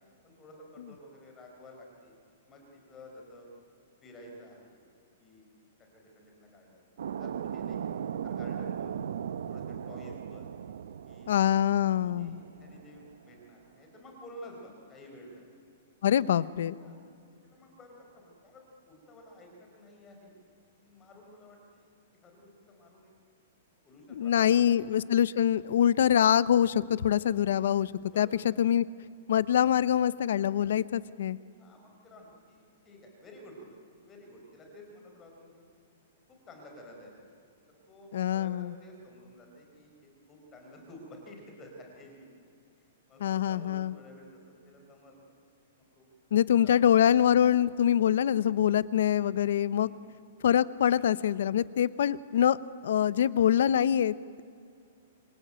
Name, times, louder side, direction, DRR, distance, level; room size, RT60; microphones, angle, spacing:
voice 1, 0.2-2.1 2.5-3.5 4.0-4.8 5.2-5.5 5.8-9.0 9.5-10.5 11.1-11.7 12.0-15.4 16.2-16.3 16.8-17.0 17.4-20.3 20.8-23.1 23.8-24.9 28.0-28.4 31.6-35.7 36.3-37.1 37.9-42.3 42.8-45.3 45.8-46.0 46.5-46.8 49.8-50.1, left 1 dB, 15° left, 1 dB, 4.7 m, -52 dB
sound 1, 7.0-13.3, right 8 dB, 75° right, 0.8 m, -38 dB
voice 2, 11.3-12.4 16.0-16.8 24.2-28.8 29.3-31.4 38.1-38.7 43.2-43.9 46.3-49.9 50.4-52.6 52.8-54.4, left 10 dB, 65° left, 18 dB, 0.8 m, -25 dB
27.0 x 23.5 x 9.0 m, 2.4 s
hypercardioid pair, 170°, 0 cm